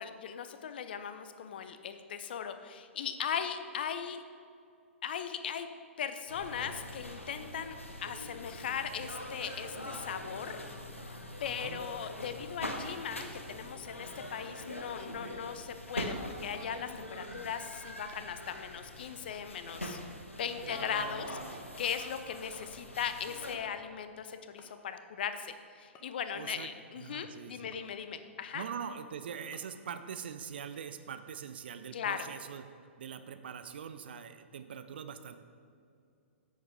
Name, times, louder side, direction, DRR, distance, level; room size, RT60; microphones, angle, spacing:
voice 1, 0.0-4.2 5.0-5.7 6.0-7.7 8.0-10.6 11.4-20.0 20.3-21.4 21.8-28.6 31.9-32.2, left 8 dB, 50° left, 9 dB, 0.6 m, -38 dB
sound 1, 6.3-23.6, left 1 dB, 85° left, 1.1 m, -43 dB
voice 2, 11.4-11.8 20.5-21.6 26.3-26.7 27.0-27.8 28.5-32.6 33.0-35.4, right 7 dB, 55° right, 10 dB, 0.6 m, -43 dB
sound 2, 16.5-16.8 18.1-18.4 18.6-18.7 19.7-19.8 21.3-21.7 23.3-23.5 23.8-23.9 24.6-24.9 25.9-26.5 27.7-27.9 28.5-28.6 29.5-29.6, left 4 dB, 25° left, 1.0 m, -56 dB
9.9 x 7.8 x 3.6 m, 2.4 s
figure-of-eight pair, 115°, 7 cm